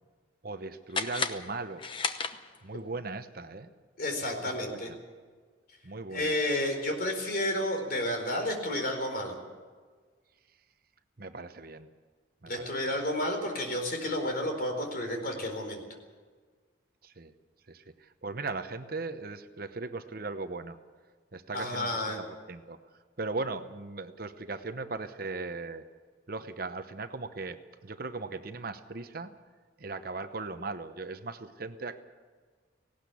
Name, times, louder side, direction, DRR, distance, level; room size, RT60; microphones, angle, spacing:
voice 1, 0.4-1.8 2.6-3.7 4.4-4.8 5.8-6.3 11.2-11.9 12.4-12.9 17.0-17.3 17.7-20.8 21.3-22.8 23.2-25.8 26.3-29.3 29.8-32.0, right 3 dB, 50° right, 9 dB, 0.9 m, -38 dB
sound 1, 0.9-2.8, left 5 dB, 25° left, 0.8 m, -34 dB
voice 2, 4.0-4.9 6.1-9.3 12.5-15.8 21.5-22.2, left 1 dB, 50° left, 4 dB, 4.3 m, -31 dB
18.5 x 17.5 x 8.4 m, 1.5 s
head